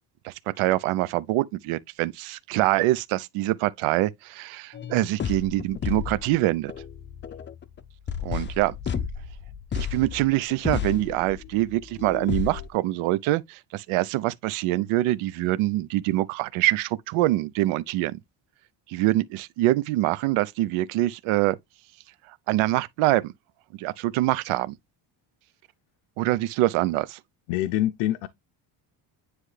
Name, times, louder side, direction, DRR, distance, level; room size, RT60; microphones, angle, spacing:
voice 1, 0.2-6.7 8.2-9.1 9.7-18.2 18.9-21.6 22.5-23.3 23.8-24.7 26.2-27.2, right 16 dB, 75° right, 0.7 m, -25 dB
sound 1, 4.7-12.7, left 8 dB, 25° left, 0.5 m, -32 dB
voice 2, 27.5-28.3, left 13 dB, 90° left, 0.7 m, -25 dB
9.6 x 3.3 x 3.2 m
cardioid pair, 130°, 50 cm